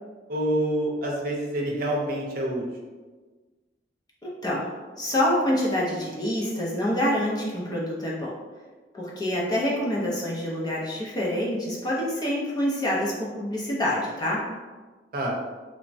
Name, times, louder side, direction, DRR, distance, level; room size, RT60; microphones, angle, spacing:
voice 1, 0.3-2.6 15.1-15.4, right 1 dB, 55° right, -2 dB, 0.6 m, -27 dB
voice 2, 4.2-4.7 5.0-8.3 8.9-14.4, left 1 dB, 25° left, -4 dB, 0.5 m, -26 dB
3.1 x 2.1 x 2.6 m, 1.3 s
head